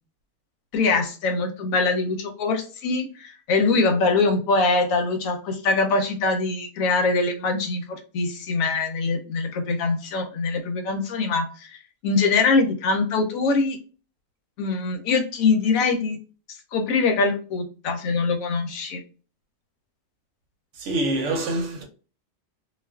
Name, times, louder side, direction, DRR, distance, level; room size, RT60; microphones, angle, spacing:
voice 1, 0.7-11.8 12.0-13.8 14.6-16.2 16.7-19.0, left 3 dB, 85° left, 1.0 m, -23 dB
voice 2, 20.8-21.8, right 1 dB, 70° right, 0.9 m, -25 dB
2.4 x 2.3 x 2.2 m
omnidirectional pair, 1.4 m